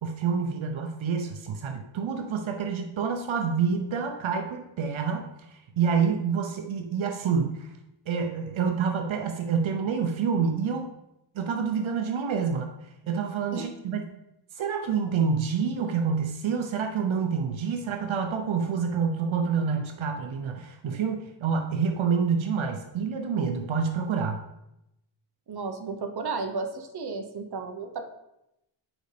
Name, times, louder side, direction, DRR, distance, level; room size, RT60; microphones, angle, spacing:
voice 1, 0.0-7.7 8.1-10.9 11.3-14.0 14.5-24.4, right 6 dB, 80° right, 5 dB, 0.8 m, -28 dB
voice 2, 25.5-28.0, right 4 dB, 55° right, 6 dB, 1.0 m, -33 dB
9.0 x 5.1 x 3.4 m, 0.86 s
wide cardioid pair, 85°, 47 cm